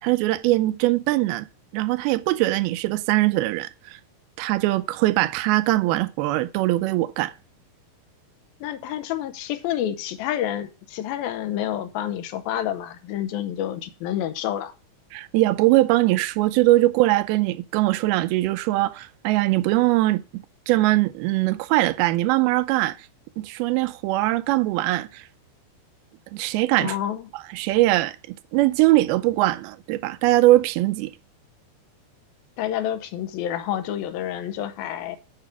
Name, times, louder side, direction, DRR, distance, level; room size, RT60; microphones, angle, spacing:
voice 1, 0.0-1.5 1.7-4.0 4.4-7.3 15.1-23.0 23.4-25.2 26.3-27.0 27.3-31.1, right 17 dB, 90° right, 2.5 m, -21 dB
voice 2, 8.6-14.7 26.8-27.3 32.6-35.2, left 11 dB, 80° left, 2.6 m, -29 dB
8.8 x 7.1 x 4.5 m
omnidirectional pair, 4.3 m